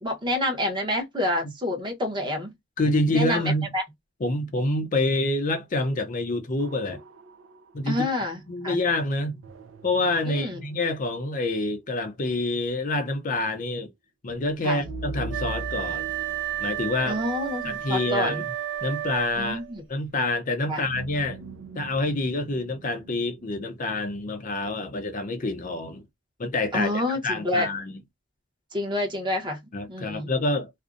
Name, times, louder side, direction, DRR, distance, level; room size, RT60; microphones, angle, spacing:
voice 1, 0.0-2.5 3.1-3.8 7.9-8.8 10.2-10.6 14.6-14.8 17.1-18.4 19.4-19.8 20.7-20.8 26.7-27.7 28.7-29.6 29.9-30.3, left 1 dB, 25° right, 0.8 m, -28 dB
voice 2, 2.8-3.7 4.2-7.0 7.7-8.1 8.5-9.4 9.8-13.9 14.2-16.1 16.6-17.2 17.6-18.5 18.8-19.6 19.9-21.4 21.7-26.0 26.4-27.9 29.7-30.7, left 2 dB, 40° left, 0.5 m, -27 dB
sound 1, 6.6-8.4 9.4-11.5 14.8-18.5 20.8-23.7, right 2 dB, 85° right, 0.4 m, -41 dB
Wind instrument woodwind instrument, 15.3-19.7, right 12 dB, 65° right, 0.8 m, -32 dB
2.5 x 2.1 x 2.4 m
head